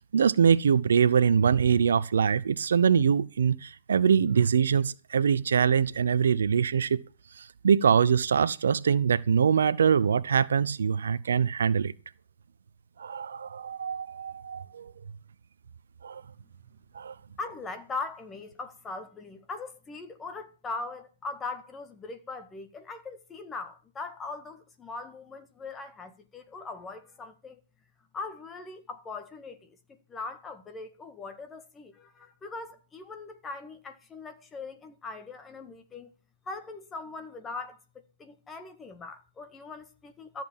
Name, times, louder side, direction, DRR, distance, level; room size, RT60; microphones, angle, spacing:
voice 1, 0.1-7.0 7.4-11.9 13.0-14.9 16.0-16.2 16.9-17.1, right 7 dB, 65° right, 0.7 m, -23 dB
voice 2, 17.4-27.6 28.1-36.1 36.5-37.8 38.2-40.4, left 3 dB, 15° left, 1.7 m, -40 dB
14.0 x 7.6 x 7.3 m
figure-of-eight pair, 125°, 0 cm